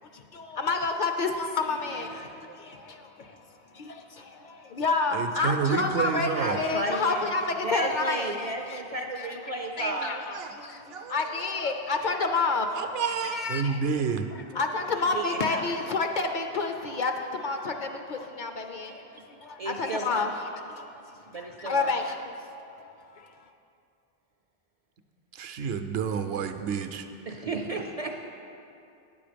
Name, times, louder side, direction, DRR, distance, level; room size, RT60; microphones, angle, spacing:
voice 1, 0.1-8.8 9.2-9.4 9.8-14.0 14.3-23.3, left 3 dB, 55° left, 5 dB, 0.6 m, -30 dB
voice 2, 1.7-2.3 6.4-7.3 7.6-10.2 15.0-15.6 19.6-20.3 21.3-21.9 27.3-28.3, right 1 dB, 50° right, 3 dB, 0.5 m, -33 dB
voice 3, 5.1-6.6 9.8-9.9 10.3-10.5 10.9-11.1 12.8-14.2 25.4-27.1, right 6 dB, 75° right, 7 dB, 0.8 m, -29 dB
9.2 x 6.9 x 5.1 m, 2.7 s
omnidirectional pair, 1.1 m